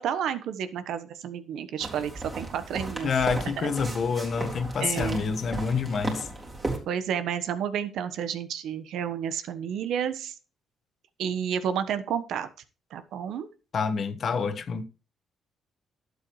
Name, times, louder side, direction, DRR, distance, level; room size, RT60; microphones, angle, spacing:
voice 1, 0.0-3.1 3.6-3.7 4.8-5.3 6.9-10.3 11.2-12.5 12.9-13.5, right 8 dB, 80° right, 1.2 m, -31 dB
sound 1, 1.8-6.8, right 2 dB, 25° right, 3.9 m, -35 dB
voice 2, 3.0-6.3 13.7-14.8, left 5 dB, 55° left, 1.4 m, -27 dB
12.0 x 8.4 x 3.2 m
cardioid pair, 90°, 0 cm